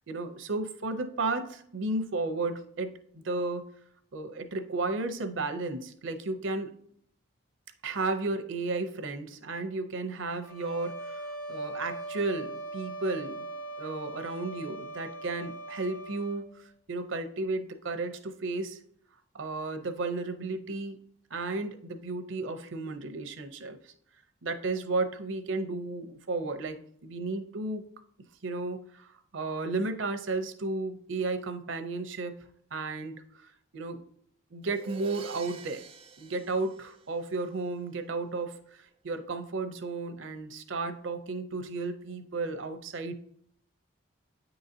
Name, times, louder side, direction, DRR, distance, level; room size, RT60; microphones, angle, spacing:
voice 1, 0.1-3.6 4.1-6.7 7.8-13.4 13.8-18.8 19.4-21.0 21.3-23.9 24.4-26.8 27.0-27.8 28.4-32.4 32.7-34.0 34.5-35.8 36.2-43.1, right 3 dB, 70° right, 8 dB, 0.7 m, -33 dB
sound 1, 10.4-16.5, right 2 dB, 85° left, 1.6 m, -40 dB
Crash cymbal, 34.6-37.6, right 5 dB, 25° right, 0.4 m, -47 dB
9.2 x 3.9 x 2.7 m, 0.65 s
head